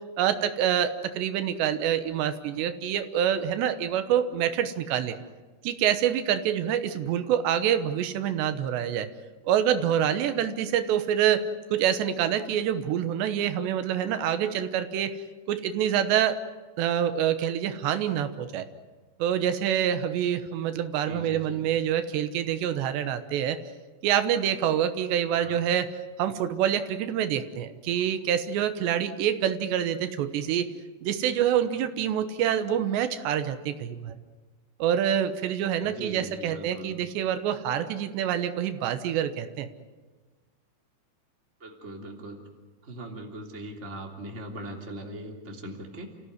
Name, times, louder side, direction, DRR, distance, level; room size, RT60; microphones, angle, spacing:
voice 1, 0.2-5.2 5.6-9.1 9.4-15.1 15.5-16.4 16.8-18.7 19.2-23.6 24.0-25.9 26.2-30.7 31.0-34.2 34.8-39.7, right 9 dB, 80° right, 10 dB, 3.3 m, -26 dB
voice 2, 21.1-21.6 25.3-25.7 35.8-37.0 41.6-42.4 42.8-46.1, right 1 dB, 20° right, 1 dB, 3.0 m, -40 dB
29.5 x 16.0 x 9.7 m, 1.3 s
omnidirectional pair, 5.0 m